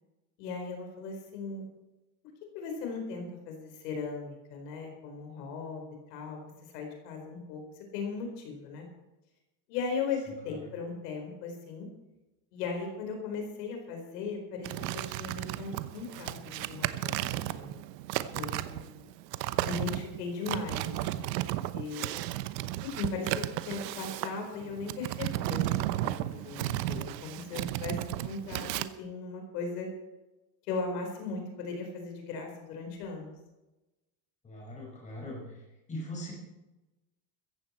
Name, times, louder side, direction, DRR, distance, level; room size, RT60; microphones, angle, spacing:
voice 1, 0.4-1.7 2.5-6.4 6.7-8.9 9.7-11.9 12.5-17.7 18.3-19.1 19.6-21.3 21.7-22.2 22.8-29.9 30.7-33.3, left 4 dB, 70° left, 3 dB, 4.6 m, -38 dB
sound 1, 14.6-28.8, right 15 dB, 80° right, 1.0 m, -34 dB
voice 2, 34.4-35.6 35.9-36.3, left 1 dB, 15° left, -3 dB, 5.5 m, -40 dB
15.5 x 14.5 x 4.4 m, 1.0 s
cardioid pair, 180°, 49 cm